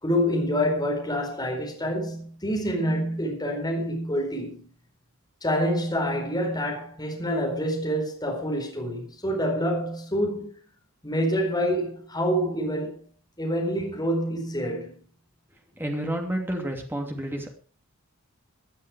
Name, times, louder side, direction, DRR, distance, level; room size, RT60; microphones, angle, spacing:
voice 1, 0.0-4.7 5.4-10.5 11.0-13.0 13.4-15.0, equal, 20° left, 4.5 m, -27 dB
voice 2, 15.7-17.5, right 1 dB, 10° right, 2.8 m, -30 dB
18.0 x 10.0 x 5.0 m
head